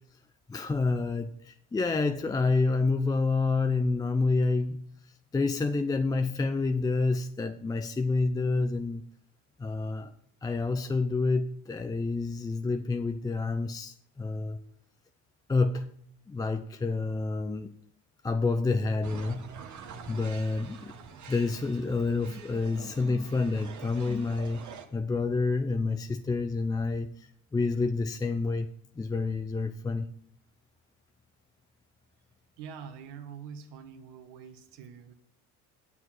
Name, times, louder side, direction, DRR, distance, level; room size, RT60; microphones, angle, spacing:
voice 1, 0.5-4.8 5.3-9.0 9.6-10.1 10.4-14.6 15.5-15.9 16.3-17.7 18.2-19.5 20.1-20.9 21.3-24.6 24.9-30.1, left 3 dB, 10° left, 0.3 m, -28 dB
sound 1, 19.0-24.9, right 6 dB, 40° right, 1.3 m, -46 dB
voice 2, 32.6-35.1, right 7 dB, 65° right, 1.4 m, -45 dB
8.3 x 7.4 x 5.9 m
supercardioid pair, 80°, 44 cm